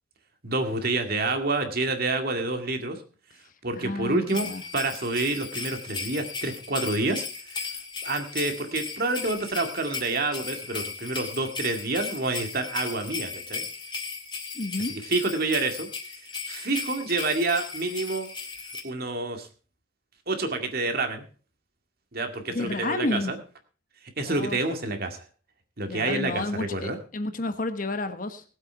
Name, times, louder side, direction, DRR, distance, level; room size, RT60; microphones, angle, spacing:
voice 1, 0.4-3.0 3.6-4.5 4.7-7.7 8.0-13.7 15.1-15.9 16.5-18.3 18.8-19.5 20.3-21.3 22.1-23.4 24.2-25.2 25.8-27.0, right 2 dB, 50° right, 5 dB, 2.1 m, -28 dB
voice 2, 3.7-4.6 14.5-15.0 22.5-23.3 24.2-24.6 25.8-28.4, left 2 dB, 45° left, 9 dB, 1.2 m, -31 dB
sound 1, 4.3-18.8, left 4 dB, 25° left, 2.3 m, -36 dB
19.0 x 8.0 x 4.6 m, 0.39 s
head